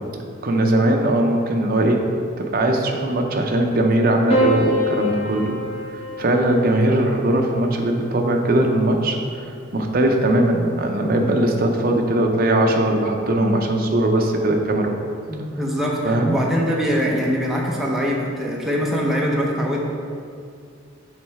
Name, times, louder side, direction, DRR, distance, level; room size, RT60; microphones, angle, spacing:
voice 1, 0.4-2.1 2.4-5.5 6.2-15.0 16.1-16.4, right 1 dB, 45° right, 2 dB, 0.6 m, -20 dB
Piano, 4.3-8.8 10.0-10.6, left 1 dB, 30° left, 1.0 m, -27 dB
voice 2, 15.3-19.8, equal, ahead, -4 dB, 0.7 m, -23 dB
7.3 x 3.2 x 4.7 m, 2.3 s
head